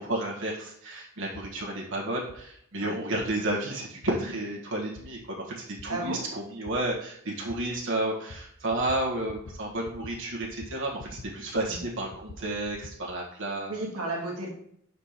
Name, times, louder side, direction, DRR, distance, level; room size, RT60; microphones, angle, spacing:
voice 1, 0.0-13.7, right 1 dB, 60° right, -2 dB, 1.5 m, -32 dB
sound 1, 1.3-1.5 2.3-2.4 3.2-3.3 4.0-4.1 5.0-5.1 5.8-5.9 6.7-6.8 7.5-7.6 8.3-8.4 8.7-9.0 9.3-9.6 9.8-10.1 10.4-11.3 11.6-13.0, left 3 dB, 70° left, 0.7 m, -44 dB
voice 2, 5.9-6.2 11.7-11.8 13.7-14.5, right 2 dB, 85° right, 0 dB, 1.6 m, -33 dB
5.0 x 4.3 x 5.7 m, 0.70 s
head